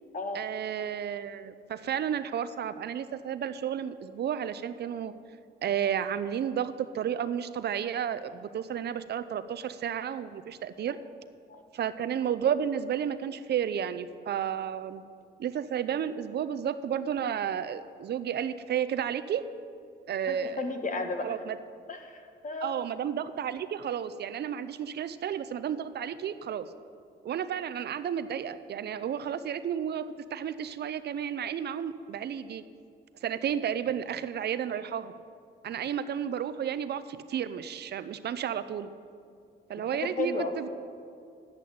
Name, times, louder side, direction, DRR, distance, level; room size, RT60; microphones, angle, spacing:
voice 1, 0.3-5.1 5.6-11.0 11.7-15.0 15.4-19.4 20.1-20.6 21.2-21.6 22.6-26.7 27.2-32.6 33.2-35.1 35.6-38.9 39.7-40.7, right 9 dB, 55° right, 13 dB, 0.5 m, -32 dB
voice 2, 20.3-21.3 21.9-22.7 39.9-40.7, left 3 dB, 40° left, 5 dB, 1.4 m, -34 dB
10.5 x 8.5 x 8.4 m, 2.4 s
cardioid pair, 90°, 20 cm